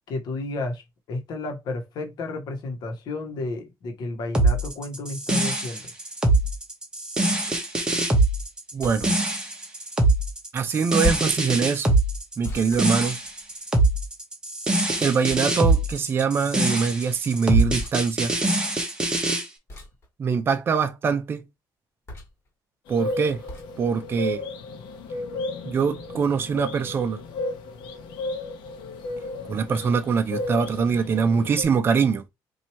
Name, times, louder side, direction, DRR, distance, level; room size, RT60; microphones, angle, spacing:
voice 1, 0.1-5.9, left 2 dB, 60° left, 1.2 m, -32 dB
sound 1, 4.3-19.4, right 2 dB, 10° right, 0.9 m, -23 dB
voice 2, 8.7-9.1 10.5-12.0 12.4-13.2 15.0-18.3 20.2-21.4 22.9-23.4 23.8-24.4 25.6-27.2 29.5-32.2, right 6 dB, 30° right, 0.4 m, -23 dB
sound 2, 8.8-9.2 11.0-11.4 12.4-13.6 15.3-15.9 17.7-18.0 19.7-20.1 22.1-22.5 23.5-23.7, equal, 35° left, 1.6 m, -33 dB
sound 3, 22.9-31.6, left 2 dB, 90° left, 0.9 m, -34 dB
2.9 x 2.7 x 4.3 m
cardioid pair, 160°, 8 cm